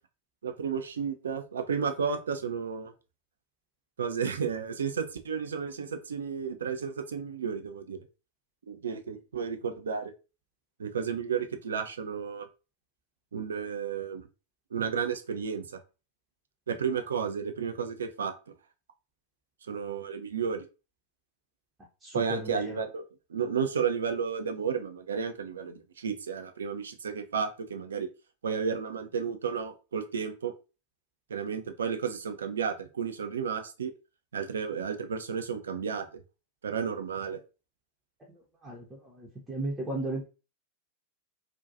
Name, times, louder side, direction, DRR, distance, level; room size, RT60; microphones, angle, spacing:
voice 1, 0.4-2.9 4.0-8.0 8.7-10.1 10.8-12.5 13.3-14.3 14.7-15.8 16.7-18.3 19.7-20.7 22.1-23.0 23.3-28.1 28.4-30.5 31.3-33.9 34.3-36.1 36.6-37.4, right 6 dB, 70° right, 7 dB, 0.4 m, -32 dB
voice 2, 22.0-22.8 38.6-40.3, right 1 dB, 15° right, -2 dB, 0.6 m, -35 dB
2.5 x 2.2 x 2.6 m, 0.31 s
figure-of-eight pair, 95°, 0 cm